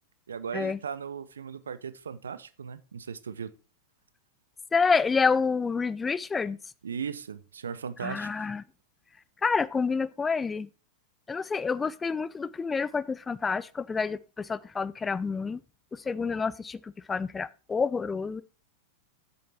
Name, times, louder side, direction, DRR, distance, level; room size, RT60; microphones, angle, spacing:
voice 1, 0.3-3.5 6.8-8.5, right 6 dB, 70° right, 0.7 m, -37 dB
voice 2, 4.7-6.6 8.0-8.6 9.4-10.7 11.3-15.6 15.9-18.4, left 5 dB, 15° left, 0.4 m, -28 dB
8.5 x 7.0 x 4.4 m
figure-of-eight pair, 90°, 0 cm